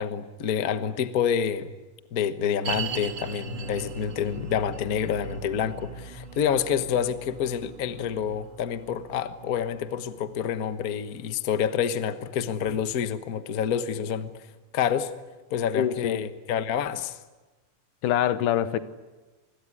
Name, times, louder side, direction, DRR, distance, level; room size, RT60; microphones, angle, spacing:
voice 1, 0.0-1.7 2.1-14.5 14.7-15.1 15.5-17.2, left 8 dB, 65° left, 0.8 m, -28 dB
sound 1, 2.6-13.9 14.2-14.3 14.9-15.0, right 4 dB, 40° right, 2.1 m, -41 dB
voice 2, 15.7-16.2 18.0-18.8, left 11 dB, 85° left, 2.6 m, -24 dB
27.0 x 21.0 x 9.7 m
omnidirectional pair, 3.7 m